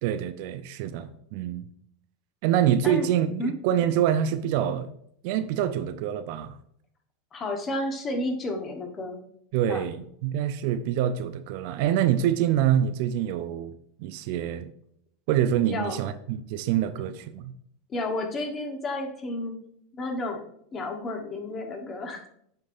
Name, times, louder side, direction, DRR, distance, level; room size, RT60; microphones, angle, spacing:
voice 1, 0.0-1.7 2.4-4.9 5.2-6.5 9.5-14.7 15.3-17.5, right 10 dB, 60° right, 11 dB, 0.5 m, -26 dB
voice 2, 7.3-9.2 9.7-9.9 15.7-16.0 17.9-19.5 19.9-20.4 20.7-22.2, left 1 dB, 30° left, 3 dB, 1.3 m, -31 dB
7.9 x 5.2 x 2.7 m, 0.68 s
hypercardioid pair, 85°, 0 cm